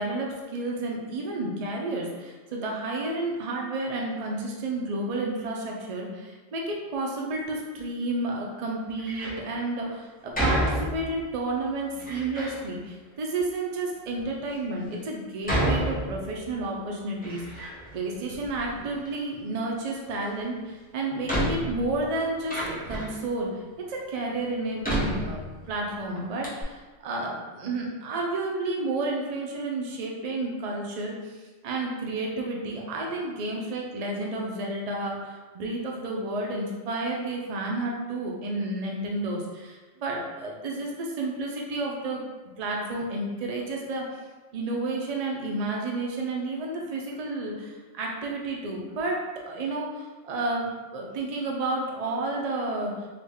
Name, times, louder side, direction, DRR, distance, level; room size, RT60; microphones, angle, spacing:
voice 1, 0.0-23.6 23.9-42.2 42.6-44.1 44.5-49.2 49.5-52.9, right 2 dB, 60° right, -1 dB, 0.4 m, -31 dB
Door, 9.0-9.5 10.3-11.3 12.0-12.6 13.4-13.5 14.2-14.3 15.4-16.6 16.9-18.0 18.3-19.1 20.5-20.6 21.3-23.2 23.9-24.0 24.8-25.9 26.2-26.3 26.4-26.6, equal, 10° left, 0.7 m, -30 dB
3.7 x 2.2 x 3.4 m, 1.3 s
omnidirectional pair, 1.3 m